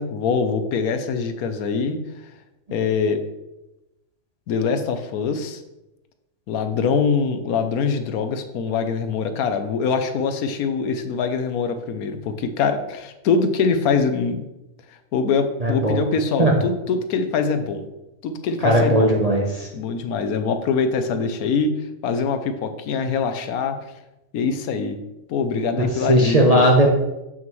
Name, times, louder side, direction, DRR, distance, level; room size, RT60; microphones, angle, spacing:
voice 1, 0.0-2.0 2.7-3.2 4.5-5.6 6.5-14.4 15.1-17.9 18.2-19.2 19.7-21.7 22.0-23.8 24.3-25.0 25.3-26.6, left 5 dB, 75° left, 8 dB, 1.1 m, -23 dB
voice 2, 15.6-16.0 16.4-16.5 18.6-19.7 25.8-26.9, right 1 dB, 35° right, -1 dB, 0.6 m, -17 dB
7.2 x 6.0 x 3.1 m, 0.96 s
omnidirectional pair, 1.6 m